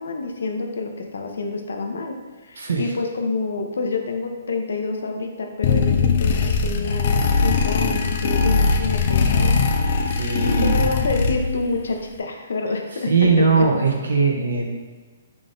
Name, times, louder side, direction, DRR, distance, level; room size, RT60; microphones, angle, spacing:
voice 1, 0.0-2.2 2.4-10.0 10.3-13.1 13.4-13.6, left 3 dB, 80° left, 3 dB, 0.7 m, -28 dB
voice 2, 2.6-2.9 10.0-10.8 13.1-14.7, right 4 dB, 85° right, -1 dB, 0.8 m, -20 dB
sound 1, 5.6-11.7, left 4 dB, 50° left, 0.5 m, -20 dB
3.8 x 3.5 x 3.9 m, 1.3 s
hypercardioid pair, 155°, 0 cm